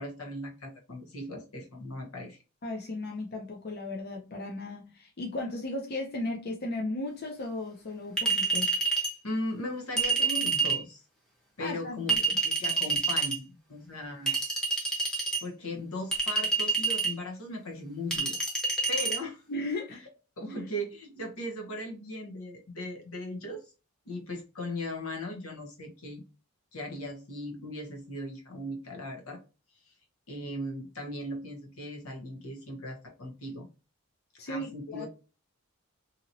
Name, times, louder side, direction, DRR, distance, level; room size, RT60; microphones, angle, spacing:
voice 1, 0.0-2.4 9.2-11.0 11.6-14.4 15.4-18.4 18.9-19.4 19.9-20.0 20.4-23.6 24.1-26.2 26.7-29.4 30.3-33.7 34.5-35.1, left 1 dB, 75° left, 0.9 m, -38 dB
voice 2, 2.6-8.8 11.6-12.4 19.5-20.2 34.4-35.1, left 2 dB, 45° left, 0.6 m, -36 dB
Chink clink, 8.2-9.1 10.0-10.8 12.1-13.3 14.3-15.4 16.1-17.1 18.1-19.2, right 4 dB, 5° left, 0.8 m, -27 dB
2.9 x 2.8 x 2.6 m
head